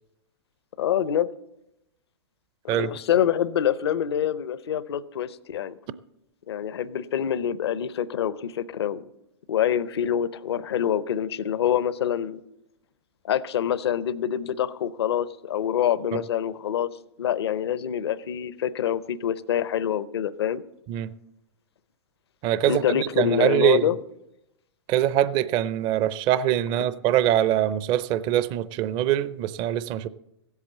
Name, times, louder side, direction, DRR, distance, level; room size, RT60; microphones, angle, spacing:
voice 1, 0.8-1.3 2.7-5.8 6.5-9.0 9.5-12.4 13.2-16.9 17.2-20.6 22.7-24.0, left 9 dB, 70° left, 0.7 m, -26 dB
voice 2, 22.4-23.9 24.9-30.1, right 12 dB, 35° right, 0.5 m, -23 dB
16.0 x 8.2 x 7.3 m
hypercardioid pair, 115°, 14 cm